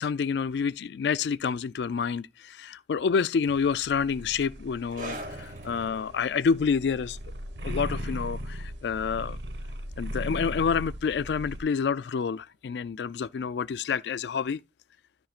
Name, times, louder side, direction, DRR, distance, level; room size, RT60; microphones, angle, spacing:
voice 1, 0.0-7.2 7.6-9.4 10.0-14.6, left 6 dB, 75° left, 0.3 m, -28 dB
sound 1, 3.5-11.6, equal, 85° right, 1.3 m, -38 dB
sound 2, 4.9-11.9 12.2-12.4 13.1-13.2, right 1 dB, 50° right, 2.1 m, -46 dB
13.0 x 6.2 x 2.4 m
head